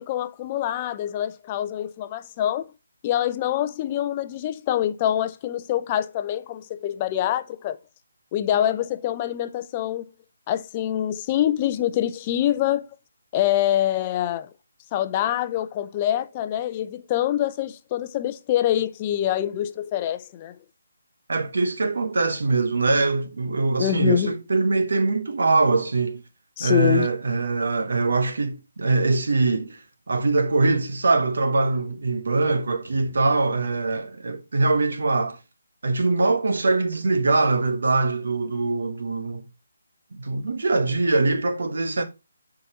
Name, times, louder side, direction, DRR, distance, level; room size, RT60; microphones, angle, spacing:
voice 1, 0.0-2.7 3.0-7.8 8.3-10.0 10.5-12.9 13.3-14.5 14.9-20.6 23.8-24.4 26.6-27.1, left 11 dB, 25° left, 0.5 m, -25 dB
voice 2, 21.3-26.2 26.6-35.4 35.8-39.4 40.2-42.0, right 3 dB, 70° right, 1.1 m, -23 dB
10.5 x 3.9 x 2.9 m
figure-of-eight pair, 155°, 0 cm